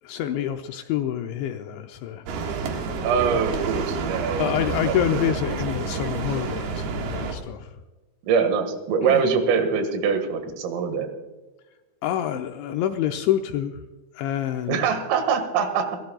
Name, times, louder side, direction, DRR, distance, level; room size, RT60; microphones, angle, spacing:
voice 1, 0.0-2.3 4.4-7.7 9.0-9.2 12.0-13.8 14.2-14.8, left 11 dB, 85° left, 5 dB, 2.7 m, -27 dB
sound 1, 2.3-7.3, right 4 dB, 60° right, 3.1 m, -29 dB
voice 2, 3.0-5.3 8.3-11.1 14.7-16.0, right 6 dB, 80° right, 7 dB, 4.4 m, -24 dB
29.0 x 13.0 x 2.3 m, 1.2 s
omnidirectional pair, 5.8 m